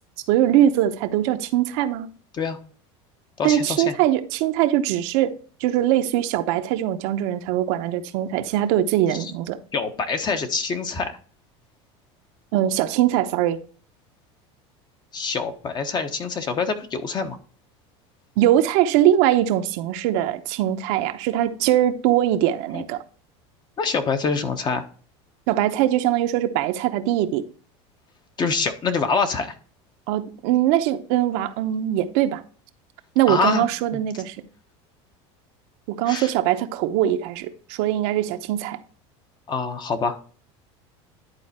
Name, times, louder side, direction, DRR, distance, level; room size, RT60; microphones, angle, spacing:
voice 1, 0.3-2.1 3.4-9.6 12.5-13.6 18.4-23.0 25.5-27.5 30.1-32.4 33.1-34.4 35.9-38.8, right 12 dB, 65° right, 0.9 m, -21 dB
voice 2, 3.4-3.9 9.1-9.3 9.7-11.2 15.1-17.4 22.7-22.8 23.8-24.8 28.4-29.6 33.3-33.7 33.9-34.0 36.1-36.3 39.5-40.2, left 5 dB, 30° left, 1.1 m, -25 dB
10.5 x 4.2 x 4.2 m
supercardioid pair, 125°, 15 cm